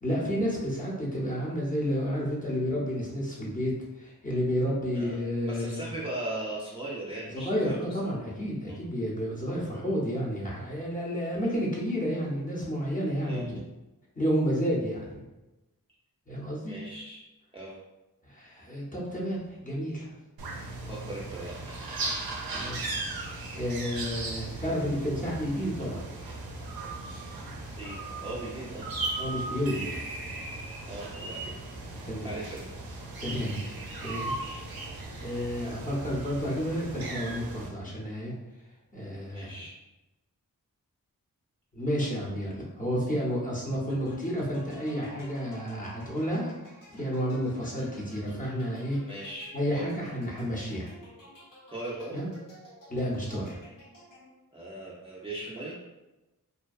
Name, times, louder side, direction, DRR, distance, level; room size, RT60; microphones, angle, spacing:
voice 1, 0.0-5.8 7.3-13.6 14.1-15.2 16.3-16.8 18.2-20.1 22.5-22.9 23.5-26.1 29.2-30.0 32.0-32.3 33.2-33.6 34.0-34.3 34.9-38.3 38.9-39.5 41.7-46.5 46.9-49.0 49.5-50.9 52.1-52.3 52.9-53.6, equal, 25° left, -5 dB, 0.8 m, -31 dB
voice 2, 5.4-8.0 8.7-8.8 13.2-13.5 16.7-17.2 17.5-17.7 20.9-21.8 27.8-28.9 30.9-31.5 31.9-32.7 39.3-39.8 49.0-49.8 51.7-52.2 54.5-55.7, right 1 dB, 15° right, -7 dB, 0.5 m, -38 dB
sound 1, 20.4-37.7, right 2 dB, 85° right, 0.5 m, -37 dB
sound 2, 43.9-54.6, left 1 dB, 65° left, 0.8 m, -53 dB
2.6 x 2.2 x 2.3 m, 1.0 s
wide cardioid pair, 70°, 35 cm